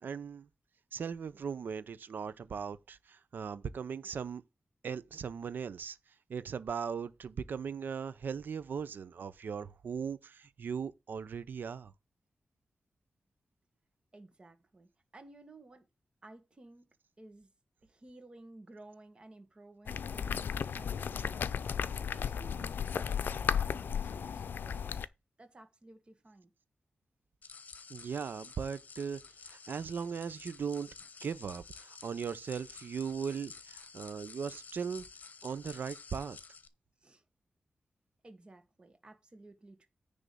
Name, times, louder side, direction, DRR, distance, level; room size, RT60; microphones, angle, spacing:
voice 1, 0.0-0.5 0.9-4.4 4.8-6.0 6.3-11.9 27.9-29.2 29.5-30.9 31.2-35.1 35.4-36.4, right 6 dB, 70° right, 0.7 m, -38 dB
voice 2, 14.1-15.8 16.2-16.9 17.2-17.5 17.8-21.5 21.9-25.0 25.4-26.5 37.0-37.2 38.2-39.9, right 2 dB, 30° right, 1.9 m, -55 dB
sound 1, 19.9-25.1, left 7 dB, 80° left, 0.5 m, -34 dB
sound 2, 27.4-36.7, left 5 dB, 55° left, 1.0 m, -51 dB
10.0 x 3.6 x 6.9 m
wide cardioid pair, 165°, 3 cm